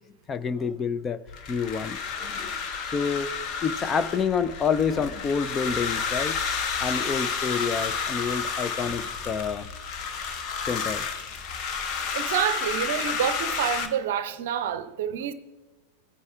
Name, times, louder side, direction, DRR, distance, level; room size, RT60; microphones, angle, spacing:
voice 1, 0.3-1.2 1.5-2.5 2.8-3.3 3.6-6.4 6.8-9.7 10.7-11.1 11.5-11.6, left 6 dB, 20° left, 0.4 m, -28 dB
sound 1, 1.3-13.9, left 6 dB, 40° left, 1.0 m, -31 dB
voice 2, 12.1-15.3, right 9 dB, 55° right, 0.6 m, -28 dB
16.5 x 9.5 x 2.3 m
figure-of-eight pair, 90°, 0 cm